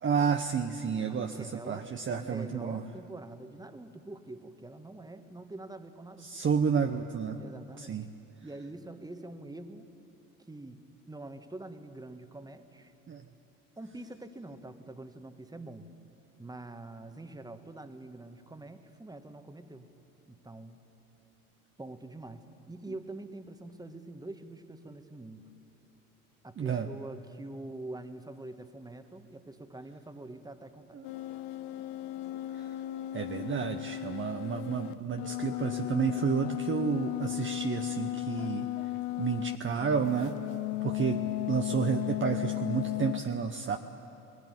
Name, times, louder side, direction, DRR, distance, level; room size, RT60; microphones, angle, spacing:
voice 1, 0.0-2.8 6.2-7.4 7.8-8.1 13.1-13.2 26.6-26.9 30.9-31.1 32.5-32.7 33.1-38.7 39.2-40.4 40.8-41.2 41.5-43.8, right 6 dB, 30° right, 6 dB, 0.9 m, -31 dB
voice 2, 1.1-6.3 7.4-8.0 8.4-9.9 10.5-10.8 11.1-12.9 13.8-15.9 16.4-19.9 20.3-20.8 21.8-25.4 26.4-31.0 41.1-41.5, right 2 dB, 10° right, 8 dB, 1.5 m, -45 dB
sound 1, 31.0-39.6 39.8-43.2, left 16 dB, 65° left, 0.7 m, -35 dB
19.5 x 15.5 x 9.7 m, 2.9 s
hypercardioid pair, 60°, 41 cm